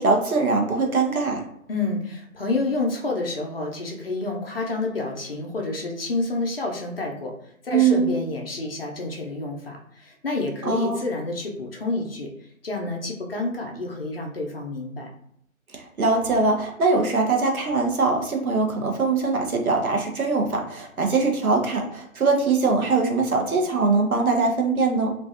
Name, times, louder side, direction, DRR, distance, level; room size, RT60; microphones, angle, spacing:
voice 1, 0.0-1.4 7.7-8.1 10.6-11.0 15.7-25.2, right 4 dB, 85° right, 2 dB, 0.8 m, -22 dB
voice 2, 1.7-7.3 7.6-12.3 12.6-15.1, left 2 dB, 45° left, 0 dB, 0.5 m, -29 dB
2.5 x 2.2 x 2.4 m, 0.70 s
figure-of-eight pair, 150°, 42 cm